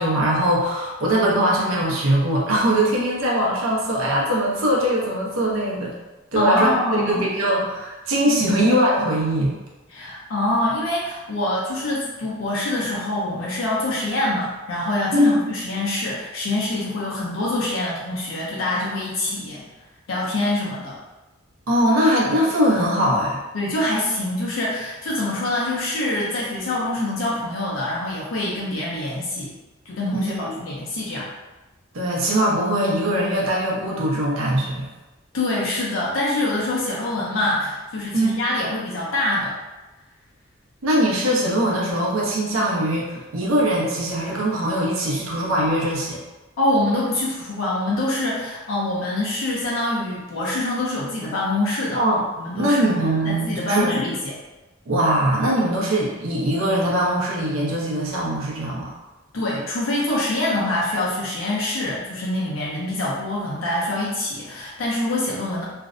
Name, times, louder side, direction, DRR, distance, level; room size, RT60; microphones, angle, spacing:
voice 1, 0.0-5.9 6.3-9.6 15.1-15.4 21.7-23.4 30.1-30.5 31.9-34.9 38.1-38.3 40.8-46.2 51.9-52.2 52.5-54.0 54.9-58.9, right 1 dB, 90° right, -3 dB, 0.6 m, -21 dB
voice 2, 6.3-7.3 8.3-8.6 9.9-19.7 20.1-21.0 23.5-29.5 29.9-31.3 35.3-39.6 46.6-52.0 52.4-52.8 53.2-54.3 59.3-65.6, left 1 dB, 75° left, -5 dB, 0.5 m, -25 dB
2.5 x 2.0 x 2.4 m, 1.1 s
head